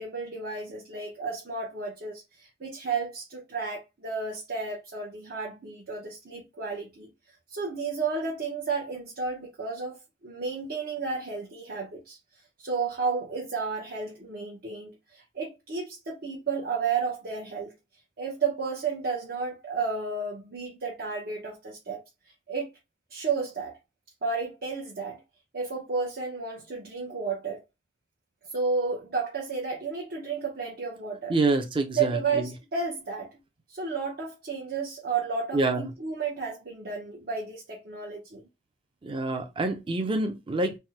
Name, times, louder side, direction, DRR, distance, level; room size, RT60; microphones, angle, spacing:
voice 1, 0.0-7.1 7.5-12.2 12.6-17.7 18.2-22.7 23.1-23.8 24.2-25.2 25.5-27.6 28.5-31.4 31.9-33.4 33.7-38.4, right 5 dB, 60° right, 0.8 m, -32 dB
voice 2, 31.3-32.2 35.5-35.8 39.0-40.8, right 2 dB, 30° right, 0.5 m, -26 dB
3.4 x 2.1 x 2.8 m
head